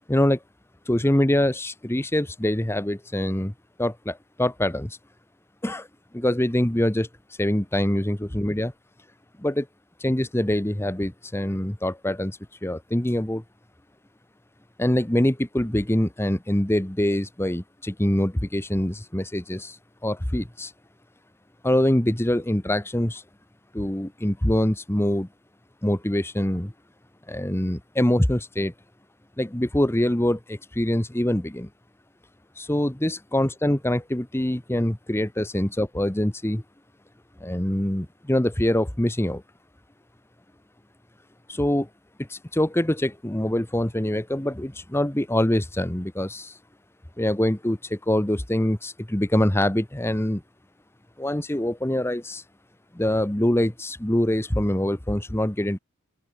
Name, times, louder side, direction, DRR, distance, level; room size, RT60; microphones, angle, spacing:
voice 1, 0.1-0.4 0.9-3.5 3.8-5.0 5.6-5.9 6.1-7.1 7.4-8.7 9.4-9.7 10.0-13.4 14.8-20.7 21.6-23.2 23.7-25.3 25.8-26.7 27.3-28.7 29.4-31.7 32.6-36.6 37.4-39.4 41.5-41.9 42.3-46.6 47.2-50.4 51.2-52.4 52.9-55.8, left 1 dB, 10° left, 1.0 m, -24 dB
open air
head